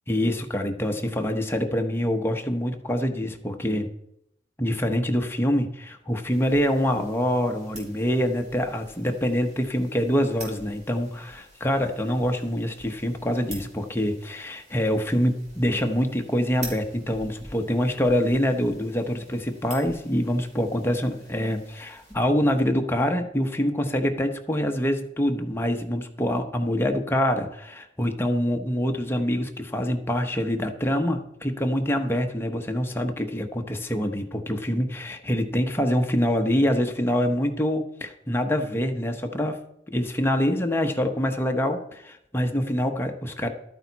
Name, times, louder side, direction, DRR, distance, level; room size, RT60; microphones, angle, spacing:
voice 1, 0.1-3.9 4.6-39.6 39.9-43.5, equal, 10° left, 4 dB, 0.9 m, -25 dB
sound 1, 6.3-22.2, right 1 dB, 40° right, 3.3 m, -47 dB
12.5 x 9.1 x 4.1 m, 0.77 s
head